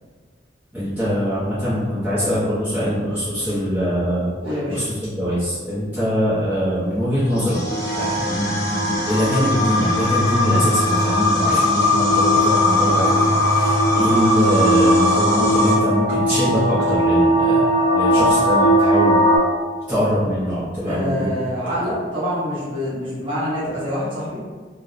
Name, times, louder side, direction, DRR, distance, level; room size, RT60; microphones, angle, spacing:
voice 1, 0.7-4.3 4.7-7.6 7.9-19.2 19.9-21.3, equal, 10° right, -14 dB, 0.6 m, -23 dB
voice 2, 4.4-4.8 11.4-11.6 20.8-24.4, equal, 30° right, -10 dB, 0.9 m, -26 dB
sound 1, 7.3-15.8, left 1 dB, 85° left, 0.6 m, -20 dB
sound 2, 7.7-19.4, equal, 45° left, 0.7 m, -21 dB
2.7 x 2.0 x 2.4 m, 1.5 s
head